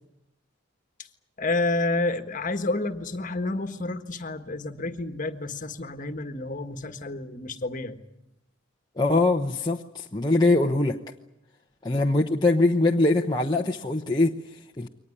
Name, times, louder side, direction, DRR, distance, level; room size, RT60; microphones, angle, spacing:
voice 1, 1.4-8.0, left 2 dB, 35° left, 8 dB, 1.6 m, -29 dB
voice 2, 9.0-11.0 11.8-14.9, left 2 dB, 20° left, 0 dB, 0.9 m, -23 dB
23.5 x 19.5 x 9.9 m, 0.85 s
head